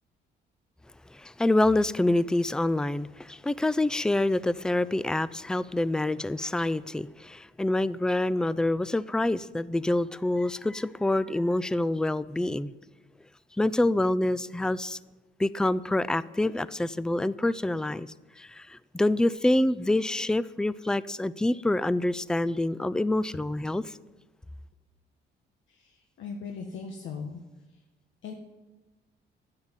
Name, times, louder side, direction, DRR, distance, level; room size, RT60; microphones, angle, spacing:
voice 1, 1.1-12.7 13.6-15.0 15.4-18.1 18.4-23.8, left 1 dB, 5° left, 18 dB, 0.4 m, -26 dB
voice 2, 25.7-27.4 28.2-28.3, left 5 dB, 70° left, 2 dB, 1.4 m, -39 dB
11.5 x 9.6 x 7.4 m, 1.1 s
cardioid pair, 90°, 20 cm